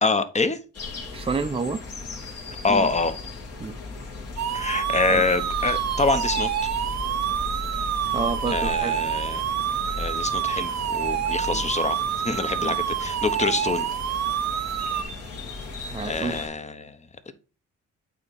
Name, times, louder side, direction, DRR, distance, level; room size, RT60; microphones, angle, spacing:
voice 1, 0.0-0.6 2.6-3.1 4.5-6.7 8.1-8.2 8.5-9.4 10.0-13.9 16.0-17.0 17.3-17.4, left 3 dB, 25° left, 1.0 m, -26 dB
sound 1, 0.7-16.5, left 3 dB, 55° left, 2.7 m, -36 dB
voice 2, 1.1-1.8 2.7-2.9 3.6-3.8 5.1-5.2 8.1-8.9 11.5-11.7 12.6-12.8 15.9-16.5, right 4 dB, 20° right, 0.7 m, -29 dB
sound 2, 4.4-15.0, right 10 dB, 65° right, 0.8 m, -27 dB
8.6 x 3.7 x 4.2 m
cardioid pair, 95°, 29 cm